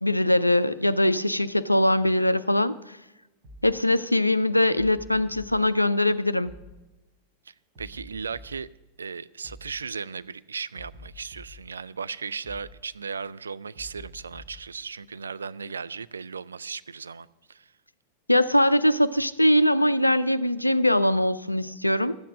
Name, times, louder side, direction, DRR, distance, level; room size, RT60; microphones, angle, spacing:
voice 1, 0.0-2.7 3.6-6.5 18.3-22.2, left 1 dB, 85° left, 0.4 m, -22 dB
sound 1, 3.4-3.8 4.7-5.6 6.4-6.8 7.7-8.7 9.4-9.8 10.7-11.7 12.4-12.8 13.7-14.7, left 2 dB, 35° right, 3.7 m, -47 dB
voice 2, 7.5-8.7 9.0-17.7, right 5 dB, 75° right, 0.3 m, -36 dB
12.5 x 7.8 x 6.1 m
figure-of-eight pair, 90°, 0 cm